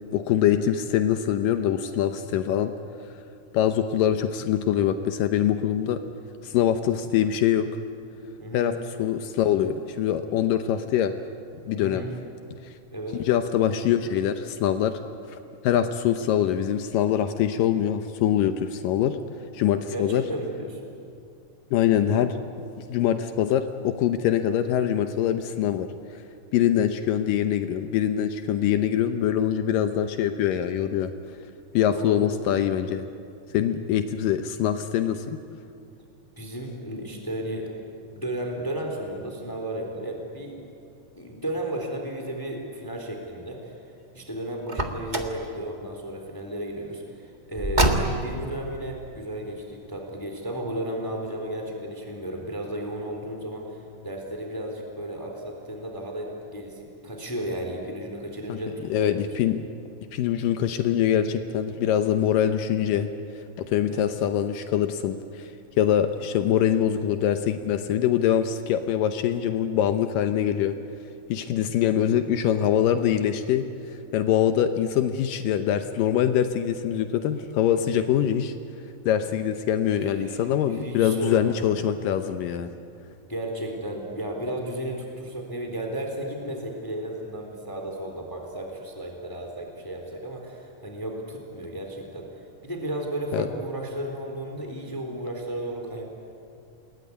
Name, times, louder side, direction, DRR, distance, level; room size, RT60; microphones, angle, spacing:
voice 1, 0.1-2.7 3.5-6.0 6.4-7.7 8.5-8.7 9.0-11.1 11.6-12.0 13.3-14.9 15.6-19.2 19.5-20.2 21.7-22.4 22.8-25.9 26.1-26.2 26.5-31.1 31.7-33.1 33.5-35.4 58.5-58.6 58.9-59.6 60.1-63.1 63.6-65.5 65.8-70.8 71.3-73.7 74.1-78.5 79.1-82.8 93.3-93.5, left 10 dB, 80° left, 8 dB, 2.5 m, -24 dB
voice 2, 8.4-8.7 11.8-12.1 12.9-13.2 19.9-20.8 31.9-32.5 36.4-37.7 38.1-40.6 41.2-43.7 44.1-59.3 63.9-64.1 80.0-80.4 80.7-81.8 83.3-96.0, right 1 dB, 5° left, 2 dB, 3.2 m, -34 dB
Car, 44.7-45.4 47.5-48.4, right 1 dB, 50° right, 0.5 m, -24 dB
28.5 x 20.5 x 9.6 m, 2.6 s
omnidirectional pair, 4.0 m